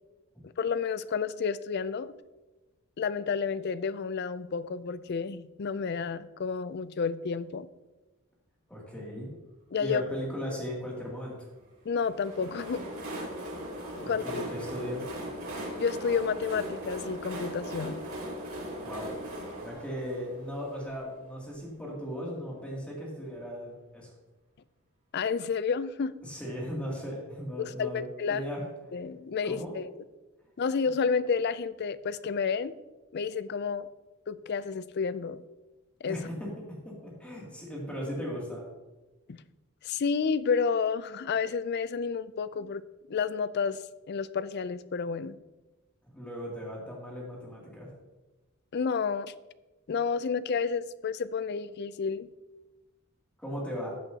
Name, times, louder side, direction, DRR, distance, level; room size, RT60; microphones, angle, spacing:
voice 1, 0.4-2.1 3.0-7.7 9.7-10.0 11.9-12.8 13.2-13.3 14.1-14.2 15.8-18.0 25.1-26.1 27.6-28.4 28.9-29.9 30.6-32.8 33.1-33.9 34.3-35.4 36.0-36.3 39.3-39.4 39.8-42.8 43.1-45.4 48.7-49.3 49.9-52.3, left 5 dB, 50° left, 16 dB, 0.4 m, -30 dB
voice 2, 8.7-9.3 9.8-11.3 14.0-15.0 18.8-19.1 19.6-24.1 26.2-28.0 28.3-28.6 29.4-29.8 36.1-36.5 36.8-38.6 46.1-47.9 53.4-54.0, equal, 5° left, -4 dB, 2.6 m, -37 dB
Train, 11.9-21.6, right 1 dB, 75° right, 3.0 m, -39 dB
14.5 x 8.1 x 2.9 m, 1.1 s
head